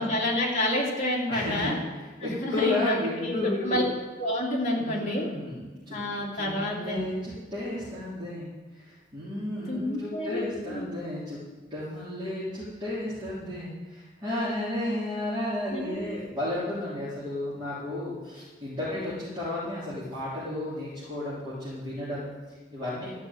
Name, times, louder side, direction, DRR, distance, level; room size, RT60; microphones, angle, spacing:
voice 1, 0.0-1.8 2.2-3.8 4.2-5.3 5.9-7.1 9.7-10.9 15.7-16.2, left 1 dB, 40° left, -3 dB, 2.5 m, -29 dB
voice 2, 1.3-3.8 4.8-6.0 6.3-8.5 8.7-11.4 11.7-23.2, left 1 dB, 25° right, -12 dB, 3.5 m, -33 dB
12.5 x 5.8 x 8.4 m, 1.3 s
head